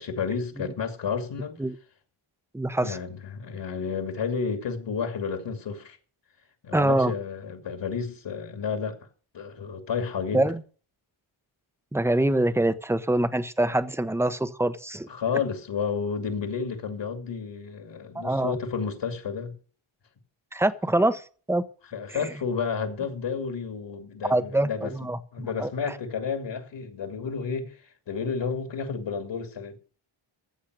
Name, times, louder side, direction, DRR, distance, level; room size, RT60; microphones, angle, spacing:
voice 1, 0.0-1.6 2.8-6.0 6.6-9.0 9.3-10.4 15.1-19.6 21.9-24.9 25.3-27.8 28.1-29.8, left 6 dB, 60° left, 2.5 m, -31 dB
voice 2, 2.5-3.0 6.7-7.1 10.3-10.6 11.9-15.1 18.1-18.6 20.5-21.6 22.1-22.3 24.3-25.7, right 1 dB, 5° right, 0.9 m, -25 dB
14.5 x 7.4 x 6.6 m
wide cardioid pair, 120°, 49 cm